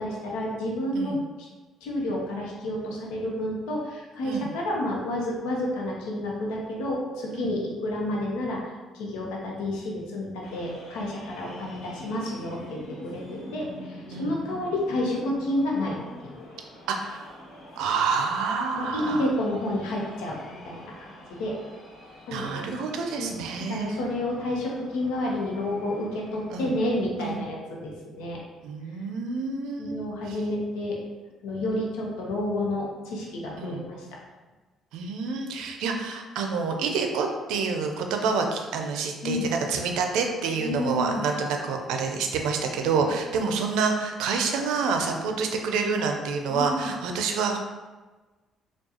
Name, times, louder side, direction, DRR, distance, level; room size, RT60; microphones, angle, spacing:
voice 1, 0.0-1.5 1.8-16.5 18.8-21.5 22.3-22.7 23.2-23.3 23.7-28.4 29.8-31.0 31.4-34.1 39.2-39.5 40.6-41.3 42.8-43.1 46.5-46.9, left 1 dB, 85° left, -2 dB, 0.8 m, -30 dB
sound 1, 10.4-26.9, left 1 dB, 70° left, 1.2 m, -46 dB
voice 2, 16.9-17.4 17.8-19.3 22.3-24.1 26.5-26.7 27.2-27.4 28.6-30.4 33.6-33.8 34.9-47.6, right 5 dB, 80° right, 3 dB, 0.4 m, -28 dB
4.5 x 2.3 x 2.8 m, 1.2 s
supercardioid pair, 70°, 0 cm